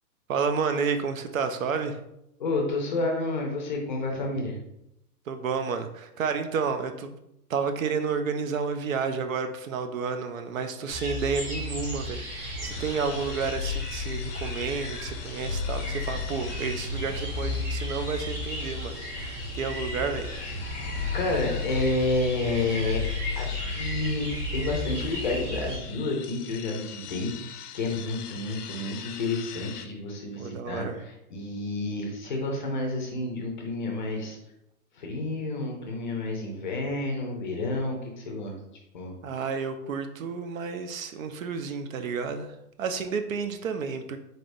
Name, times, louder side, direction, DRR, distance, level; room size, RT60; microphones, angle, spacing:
voice 1, 0.3-2.0 5.3-7.1 7.5-20.3 21.0-21.1 30.4-31.0 39.2-44.2, right 5 dB, 60° right, 8 dB, 0.5 m, -31 dB
voice 2, 2.4-4.6 19.4-19.5 21.1-23.0 23.4-34.4 34.9-38.6 38.9-39.1, left 2 dB, 30° left, 1 dB, 0.5 m, -30 dB
sound 1, 10.9-25.8, left 2 dB, 20° right, 0.8 m, -33 dB
sound 2, 12.7-29.9, left 9 dB, 80° left, 0.6 m, -44 dB
4.0 x 3.3 x 2.6 m, 0.83 s
hypercardioid pair, 160°, 46 cm